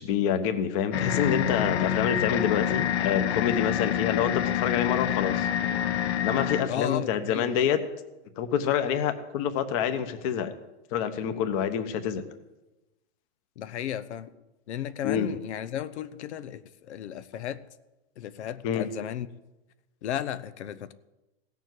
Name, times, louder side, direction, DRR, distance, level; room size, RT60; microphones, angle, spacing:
voice 1, 0.0-5.5 6.2-7.8 8.4-10.5 10.9-12.2 15.0-15.3 18.6-18.8, left 8 dB, 30° left, 9 dB, 1.0 m, -27 dB
sound 1, 0.9-6.6, left 10 dB, 75° left, 1.2 m, -27 dB
voice 2, 6.7-7.5 13.6-14.3 14.7-17.6 18.2-19.3 20.0-20.9, left 10 dB, 90° left, 13 dB, 1.0 m, -34 dB
16.5 x 7.2 x 9.4 m, 1.0 s
supercardioid pair, 175°, 33 cm